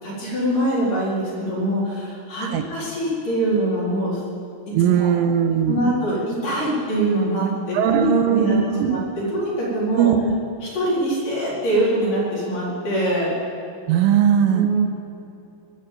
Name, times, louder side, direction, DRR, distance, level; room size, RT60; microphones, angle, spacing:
voice 1, 0.0-4.2 5.0-5.1 5.7-10.1 10.6-13.3 14.5-14.8, right 1 dB, 45° left, -7 dB, 5.4 m, -23 dB
voice 2, 4.7-5.8 7.7-9.0 10.0-10.2 13.9-14.7, right 8 dB, 90° right, 7 dB, 3.3 m, -19 dB
21.0 x 7.7 x 7.8 m, 2.8 s
omnidirectional pair, 5.7 m